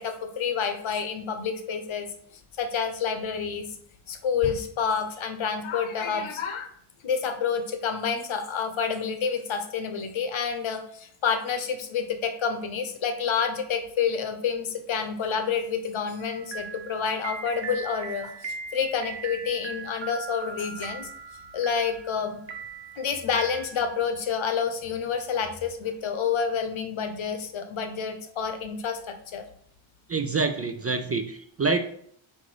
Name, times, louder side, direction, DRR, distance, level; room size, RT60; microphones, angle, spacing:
voice 1, 0.0-2.1 2.6-3.7 4.1-6.7 7.0-21.1 21.5-22.4 23.0-29.4, left 6 dB, 70° left, 7 dB, 0.9 m, -28 dB
sound 1, 16.2-24.1, right 4 dB, 60° right, 1.1 m, -39 dB
voice 2, 30.1-31.8, right 4 dB, 30° right, 8 dB, 0.4 m, -26 dB
7.6 x 2.7 x 4.9 m, 0.64 s
wide cardioid pair, 155°, 49 cm